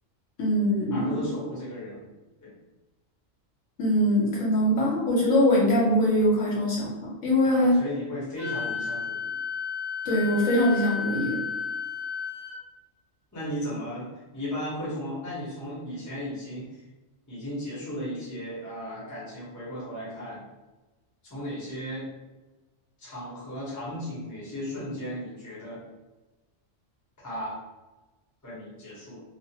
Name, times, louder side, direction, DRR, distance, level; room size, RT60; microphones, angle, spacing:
voice 1, 0.4-1.3 3.8-6.9 7.2-7.8 10.0-11.4, equal, 70° left, -5 dB, 1.1 m, -22 dB
voice 2, 0.9-2.1 2.4-2.5 7.4-9.3 13.3-14.1 14.3-16.7 17.3-20.4 21.2-22.1 23.0-25.8 27.2-27.6 28.4-29.2, equal, 15° left, -7 dB, 0.7 m, -35 dB
Wind instrument woodwind instrument, 8.4-12.6, left 6 dB, 70° right, 0.8 m, -32 dB
2.4 x 2.1 x 2.7 m, 1.1 s
omnidirectional pair, 1.4 m